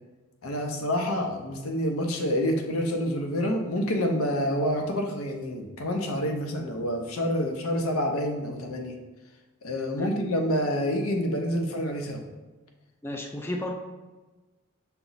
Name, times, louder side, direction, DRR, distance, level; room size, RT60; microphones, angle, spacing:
voice 1, 0.4-8.9 9.6-12.2, equal, 85° left, 3 dB, 0.6 m, -28 dB
voice 2, 13.0-13.7, left 1 dB, 10° left, 3 dB, 0.3 m, -33 dB
5.7 x 2.0 x 3.9 m, 1.2 s
head